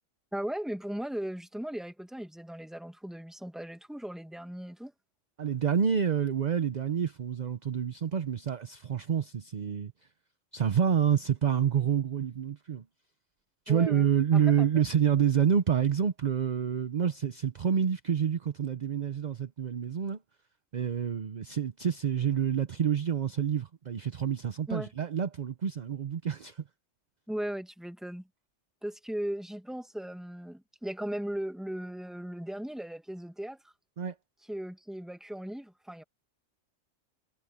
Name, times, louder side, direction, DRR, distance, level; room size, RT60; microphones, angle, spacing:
voice 1, 0.3-4.9 13.7-14.1 14.3-14.8 24.7-24.9 27.3-28.3 28.8-33.7 34.4-36.0, right 1 dB, ahead, 1.5 m, -37 dB
voice 2, 5.4-9.9 10.5-12.8 13.7-20.2 20.7-26.6 34.0-34.1, right 8 dB, 45° right, 0.6 m, -28 dB
omnidirectional pair, 1.3 m